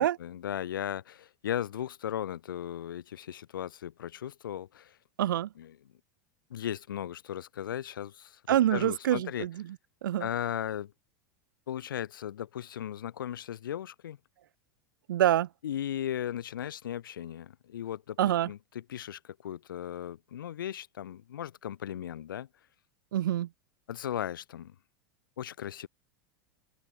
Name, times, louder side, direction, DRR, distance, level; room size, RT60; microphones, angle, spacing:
voice 1, 0.0-5.0 5.6-5.8 6.5-9.5 10.2-10.9 11.7-14.2 15.6-22.5 23.9-24.7 25.4-25.9, left 10 dB, 75° left, 5.1 m, -37 dB
voice 2, 5.2-5.5 8.5-9.5 10.0-10.3 15.1-15.5 18.2-18.5 23.1-23.5, right 12 dB, 75° right, 2.1 m, -26 dB
open air
hypercardioid pair, 90°, 11 cm